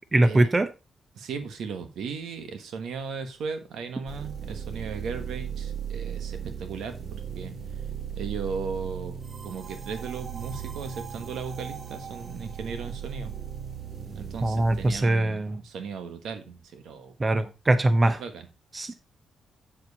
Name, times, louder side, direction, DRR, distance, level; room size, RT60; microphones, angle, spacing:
voice 1, 0.1-0.7 14.4-15.6 17.2-18.2 18.7-18.9, right 1 dB, 25° right, 0.8 m, -22 dB
voice 2, 1.1-7.0 7.3-7.5 8.2-9.2 9.4-13.3 14.1-17.1 18.0-18.5 18.9-19.0, right 5 dB, 85° right, 1.5 m, -36 dB
sound 1, 4.1-15.0, right 8 dB, 50° right, 1.4 m, -37 dB
7.7 x 7.3 x 4.1 m
cardioid pair, 100°, 0 cm